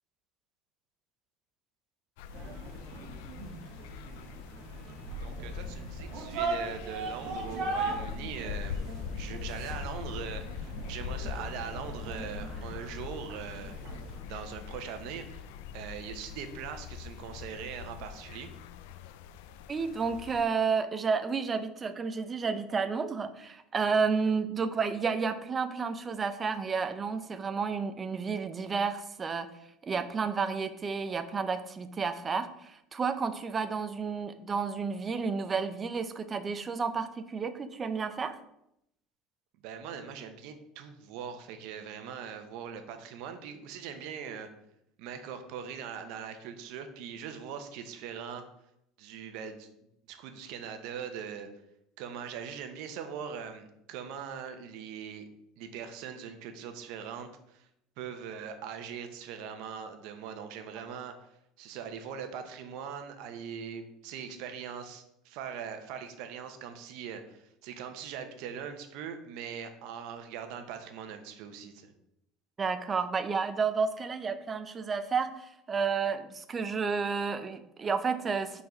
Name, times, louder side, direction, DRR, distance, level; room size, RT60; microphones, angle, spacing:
sound 1, 2.2-20.4, left 8 dB, 85° left, 0.4 m, -42 dB
sound 2, 2.3-14.2, right 3 dB, 45° right, 1.2 m, -39 dB
voice 1, 5.2-8.8 9.2-13.8 14.2-15.5 15.7-18.5 39.6-44.5 45.0-48.4 49.0-49.7 50.1-51.5 52.0-55.3 55.6-57.7 58.0-61.3 61.6-71.9, right 7 dB, 60° right, 7 dB, 0.8 m, -41 dB
voice 2, 19.7-29.5 29.8-38.4 72.6-78.6, right 5 dB, 20° right, 10 dB, 0.4 m, -31 dB
4.8 x 4.1 x 5.1 m, 0.79 s
cardioid pair, 165°, 0 cm